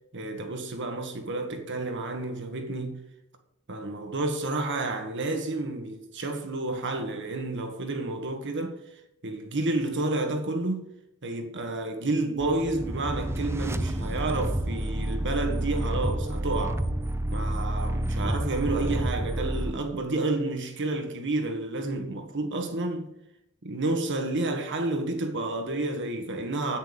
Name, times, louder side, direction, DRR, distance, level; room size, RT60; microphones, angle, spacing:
voice 1, 0.1-3.0 3.7-8.8 9.2-10.9 11.2-16.8 17.3-23.1 23.6-26.8, right 2 dB, 55° right, 1.6 m, -30 dB
sound 1, 12.4-19.7, right 1 dB, 10° right, 0.7 m, -29 dB
10.0 x 9.2 x 7.0 m
head